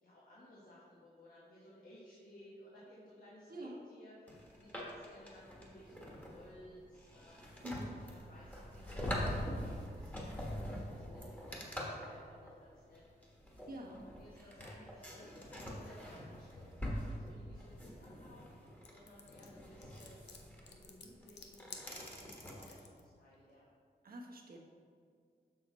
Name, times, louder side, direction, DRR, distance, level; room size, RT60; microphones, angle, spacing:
voice 1, 0.0-7.4 7.9-13.5 13.8-20.2 20.6-23.7, left 1 dB, 55° left, -7 dB, 1.3 m, -59 dB
sound 1, 4.3-22.7, equal, 10° left, 1.4 m, -44 dB
voice 2, 7.6-8.0 13.7-14.1 24.0-24.6, equal, 55° right, -1 dB, 1.2 m, -46 dB
sound 2, 18.8-23.0, left 5 dB, 80° left, 0.7 m, -53 dB
6.6 x 5.8 x 4.1 m, 2.1 s
cardioid pair, 90°, 18 cm